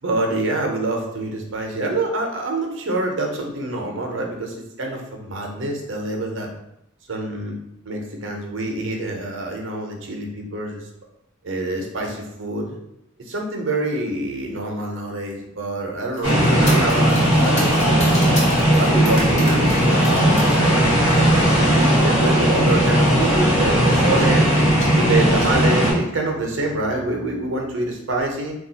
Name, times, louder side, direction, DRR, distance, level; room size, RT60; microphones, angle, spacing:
voice 1, 0.0-6.5 7.1-7.6 7.8-10.9 11.4-12.7 13.2-18.2 18.7-24.5 24.9-28.5, right 2 dB, 65° right, 1 dB, 0.6 m, -26 dB
sound 1, 16.1-20.7 21.1-21.5 22.4-22.5 22.8-22.9 23.1-23.7 24.2-24.4 24.8-25.6, left 1 dB, 35° left, 0.7 m, -33 dB
sound 2, 16.2-25.9, equal, 65° left, 1.3 m, -17 dB
2.3 x 2.3 x 3.9 m, 0.81 s
head